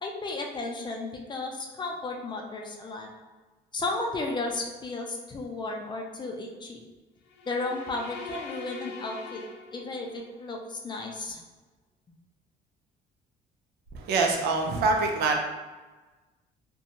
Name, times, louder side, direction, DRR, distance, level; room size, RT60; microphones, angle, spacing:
voice 1, 0.0-3.1 3.7-6.8 7.5-9.4 9.7-11.4, left 2 dB, 25° left, 1 dB, 0.4 m, -34 dB
sound 1, 7.3-10.3, left 4 dB, 85° left, 0.4 m, -42 dB
voice 2, 13.9-15.4, right 3 dB, 70° right, 2 dB, 0.5 m, -25 dB
2.6 x 2.2 x 2.8 m, 1.2 s
cardioid pair, 110°, 17 cm